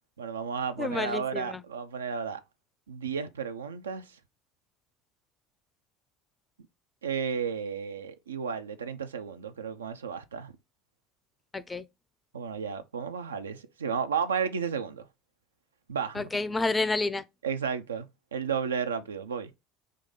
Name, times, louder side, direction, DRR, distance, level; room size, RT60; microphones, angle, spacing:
voice 1, 0.2-2.4 2.9-4.2 7.0-10.5 12.3-15.1 15.9-16.2 17.4-19.5, right 6 dB, 85° right, 0.4 m, -33 dB
voice 2, 0.8-1.6 11.5-11.8 16.2-17.2, left 3 dB, 20° left, 0.4 m, -29 dB
3.7 x 2.6 x 3.7 m
figure-of-eight pair, 70°, 0 cm